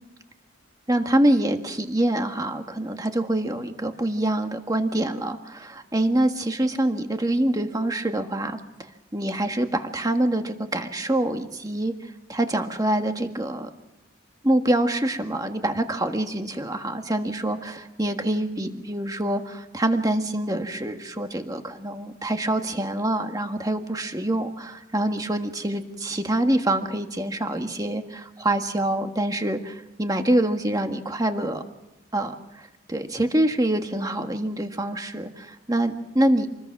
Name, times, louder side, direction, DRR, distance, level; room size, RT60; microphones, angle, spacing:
voice 1, 0.9-13.7 14.4-31.6 32.1-36.5, right 1 dB, 15° right, 5 dB, 1.6 m, -25 dB
27.5 x 20.5 x 6.0 m, 0.95 s
head